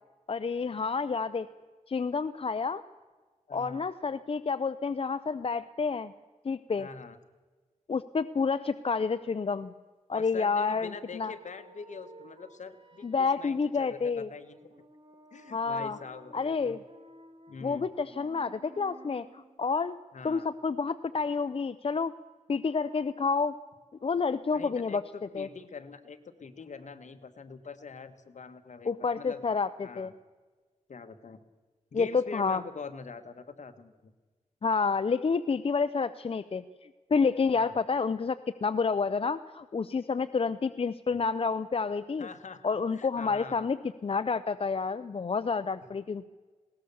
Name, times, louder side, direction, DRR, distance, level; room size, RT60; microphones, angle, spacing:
voice 1, 0.3-1.5 1.9-2.8 3.5-6.1 6.4-6.9 7.9-9.7 10.1-11.3 13.0-14.3 15.5-16.0 16.3-16.8 17.6-20.0 20.2-22.1 22.5-23.6 24.0-25.0 25.3-25.5 28.8-30.1 31.9-32.6 34.6-42.3 42.6-43.8 44.0-46.3, left 5 dB, 45° left, 12 dB, 0.6 m, -29 dB
voice 2, 3.5-3.8 6.8-7.2 10.1-14.6 15.3-16.8 17.5-17.9 20.1-20.5 24.5-29.4 29.8-30.1 30.9-31.4 31.9-34.1 37.5-37.7 42.2-43.7, left 5 dB, 65° left, 8 dB, 1.5 m, -44 dB
sound 1, 10.9-19.6, right 1 dB, 45° right, 2.6 m, -55 dB
20.5 x 18.5 x 7.0 m, 1.4 s
wide cardioid pair, 90°, 13 cm